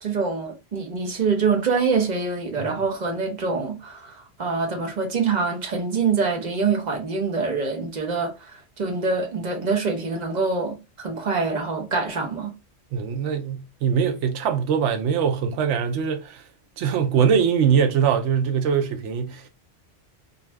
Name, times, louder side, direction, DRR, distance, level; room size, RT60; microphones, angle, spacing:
voice 1, 0.0-12.5, right 4 dB, 45° right, 0.8 m, -25 dB
voice 2, 12.9-16.4 16.8-19.5, right 7 dB, 80° right, 0.9 m, -22 dB
2.6 x 2.3 x 3.1 m
omnidirectional pair, 1.2 m